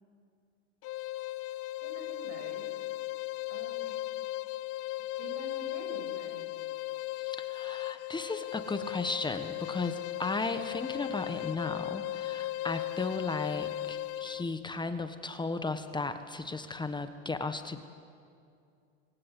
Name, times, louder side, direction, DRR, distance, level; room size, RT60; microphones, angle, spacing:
sound 1, 0.8-14.5, left 16 dB, 40° left, 0.7 m, -37 dB
voice 1, 1.8-2.7 3.5-4.0 5.2-6.4, right 3 dB, 75° right, 3 dB, 7.2 m, -47 dB
voice 2, 7.2-17.8, left 3 dB, 10° left, 9 dB, 1.3 m, -35 dB
29.0 x 24.0 x 8.3 m, 2.4 s
hypercardioid pair, 100°, 37 cm